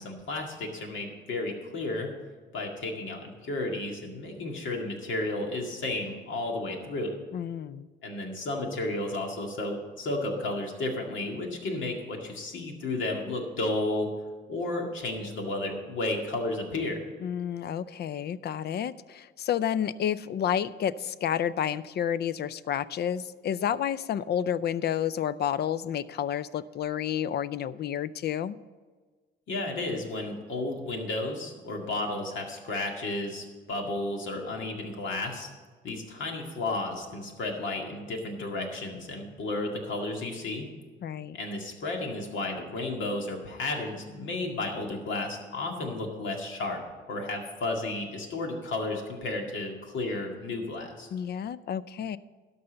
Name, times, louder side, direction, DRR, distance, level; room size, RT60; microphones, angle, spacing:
voice 1, 0.0-2.1 2.5-7.1 8.0-14.1 14.5-17.0 29.5-35.5 35.8-40.7 41.3-46.8 47.1-51.1, left 2 dB, 75° left, 2 dB, 2.1 m, -33 dB
voice 2, 7.3-7.9 17.2-28.6 41.0-41.4 51.1-52.2, left 9 dB, 55° left, 18 dB, 0.4 m, -30 dB
12.5 x 5.5 x 7.9 m, 1.4 s
cardioid pair, 90°, 20 cm